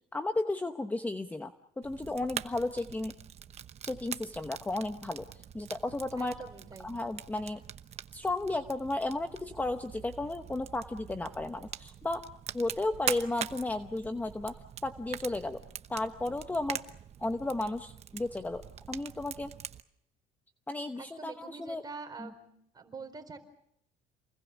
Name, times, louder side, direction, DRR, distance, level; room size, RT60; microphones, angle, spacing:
voice 1, 0.1-3.1 3.8-6.3 6.8-7.6 8.1-12.2 12.5-14.5 14.8-15.6 15.9-16.8 17.2-19.5 20.7-21.8 22.2-22.3, left 2 dB, 10° left, 8 dB, 0.9 m, -34 dB
Fire, 1.8-19.8, right 9 dB, 40° right, 1.0 m, -43 dB
voice 2, 6.2-7.0 20.9-23.4, right 4 dB, 25° right, 5 dB, 4.3 m, -45 dB
28.0 x 21.0 x 7.2 m, 0.73 s
cardioid pair, 120°, 17 cm